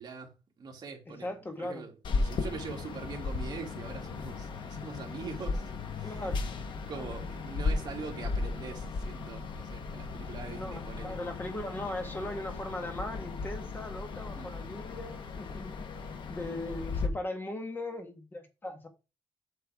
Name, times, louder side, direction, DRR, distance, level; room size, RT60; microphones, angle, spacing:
voice 1, 0.0-1.3 1.6-6.3 6.9-11.1 14.3-14.5, right 5 dB, 50° right, 2.6 m, -43 dB
voice 2, 1.1-1.8 6.0-6.4 7.0-7.1 10.5-15.8 16.3-18.9, left 1 dB, 20° left, 1.6 m, -39 dB
sound 1, 2.0-17.1, left 4 dB, 60° left, 1.2 m, -36 dB
8.0 x 6.5 x 3.6 m
wide cardioid pair, 150°, 9 cm